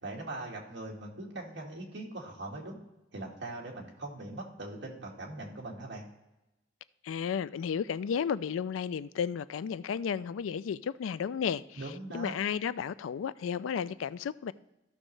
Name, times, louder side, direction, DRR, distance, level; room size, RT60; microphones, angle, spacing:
voice 1, 0.0-2.8 3.1-6.0 11.8-12.3, right 2 dB, 65° right, 1.9 m, -41 dB
voice 2, 7.0-14.5, left 7 dB, 90° left, 0.3 m, -33 dB
14.0 x 6.2 x 3.2 m
head